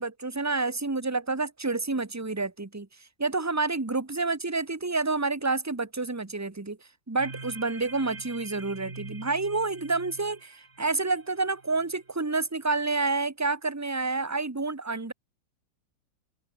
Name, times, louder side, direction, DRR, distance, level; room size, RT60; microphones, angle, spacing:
voice 1, 0.0-2.9 3.2-6.8 7.1-15.1, right 3 dB, 10° right, 1.0 m, -29 dB
sound 1, 7.2-12.0, right 3 dB, 30° right, 2.4 m, -45 dB
open air
omnidirectional pair, 2.0 m